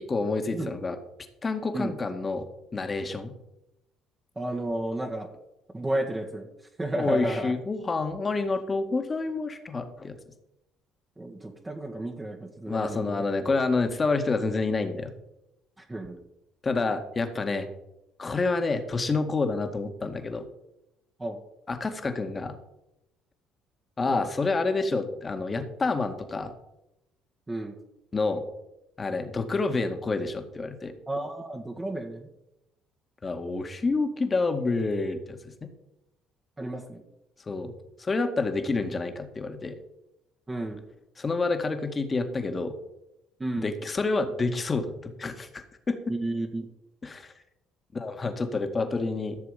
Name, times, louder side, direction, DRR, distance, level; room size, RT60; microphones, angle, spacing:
voice 1, 0.1-1.0 1.4-2.5 2.7-3.3 6.9-10.2 12.7-15.1 16.6-17.7 18.2-20.5 21.7-22.6 24.0-26.5 28.1-28.4 29.0-30.9 33.2-35.7 37.5-37.7 38.0-39.8 41.2-42.8 43.6-46.0 47.0-47.3 47.9-49.4, left 3 dB, 30° left, 7 dB, 1.9 m, -28 dB
voice 2, 4.3-5.3 5.7-6.5 6.8-7.5 11.2-13.2 15.8-16.2 21.2-21.4 24.1-24.2 27.5-27.8 31.1-32.3 36.6-37.0 40.5-40.8 43.4-43.7 46.1-46.6, right 1 dB, 20° right, 1 dB, 1.7 m, -32 dB
15.0 x 6.8 x 5.2 m, 0.90 s
hypercardioid pair, 60°, 0 cm